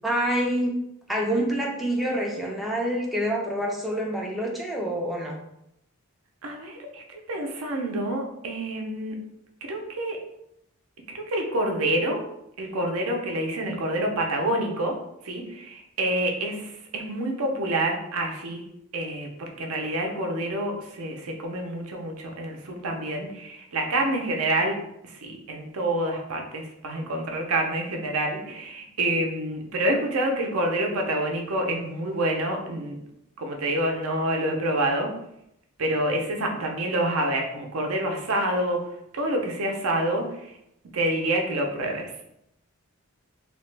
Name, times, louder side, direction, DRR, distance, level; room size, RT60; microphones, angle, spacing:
voice 1, 0.0-0.8 1.1-5.4, right 1 dB, ahead, -2 dB, 0.3 m, -27 dB
voice 2, 6.4-9.2 9.6-10.2 11.1-12.2 12.6-15.0 15.2-18.6 18.9-24.8 25.0-33.0 33.4-35.1 35.8-38.8 39.1-40.6 40.9-42.1, right 1 dB, 75° right, 2 dB, 0.6 m, -27 dB
2.8 x 2.1 x 3.2 m, 0.80 s
head